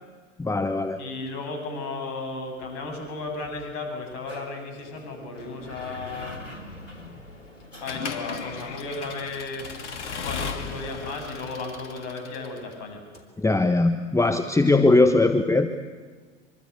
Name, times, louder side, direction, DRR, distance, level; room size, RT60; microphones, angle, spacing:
voice 1, 0.4-1.0 13.4-15.7, left 2 dB, 10° left, 8 dB, 1.3 m, -20 dB
voice 2, 1.0-6.4 7.8-9.7 10.2-13.0, left 3 dB, 50° left, 4 dB, 7.7 m, -34 dB
sound 1, 2.6-10.2 13.1-13.3, left 1 dB, 90° left, 4.1 m, -45 dB
Accelerating revving vroom / Mechanisms, 7.9-12.8, left 5 dB, 75° left, 2.7 m, -35 dB
26.0 x 24.0 x 8.4 m, 1.5 s
figure-of-eight pair, 80°, 36 cm